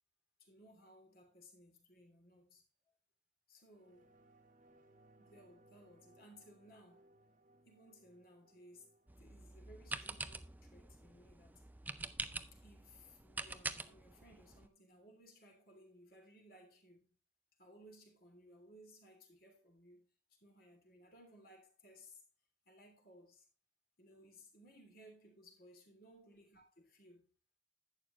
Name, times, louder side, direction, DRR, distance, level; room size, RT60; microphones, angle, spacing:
voice 1, 0.4-2.6 3.5-4.1 5.2-7.2 7.6-8.9 9.2-11.7 12.5-17.1 17.6-22.2 22.7-23.5 24.0-27.3, equal, 50° left, 3.1 m, -61 dB
sound 1, 3.7-12.7 13.0-13.1, right 1 dB, 45° right, 1.4 m, -69 dB
sound 2, 9.1-14.7, right 3 dB, 10° right, 0.4 m, -46 dB
11.0 x 9.1 x 3.1 m
head